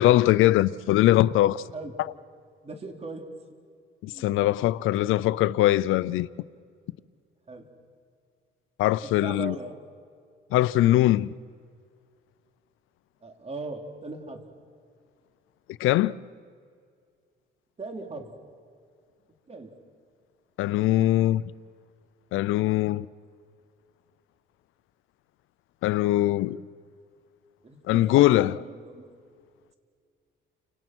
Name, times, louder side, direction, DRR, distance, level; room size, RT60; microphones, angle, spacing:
voice 1, 0.0-1.6 4.0-6.3 8.8-9.6 10.5-11.3 15.8-16.1 20.6-21.4 22.3-23.1 25.8-26.6 27.9-28.6, left 15 dB, 90° left, 0.6 m, -21 dB
voice 2, 2.6-3.3 4.1-4.3 7.5-7.7 9.0-9.8 13.2-14.4 17.8-18.3 19.5-19.7 27.6-29.1, right 3 dB, 30° right, 3.7 m, -39 dB
30.0 x 26.0 x 6.2 m
cardioid pair, 90°, 20 cm